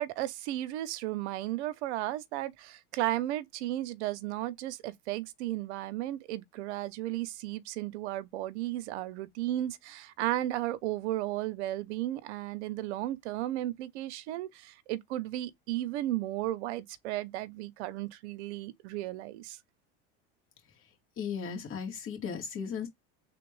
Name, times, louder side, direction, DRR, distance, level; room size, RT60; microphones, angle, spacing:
voice 1, 0.0-19.6, right 14 dB, 80° right, 0.7 m, -34 dB
voice 2, 20.7-22.9, left 6 dB, 40° left, 2.1 m, -37 dB
3.5 x 2.4 x 3.0 m
supercardioid pair, 110°, 34 cm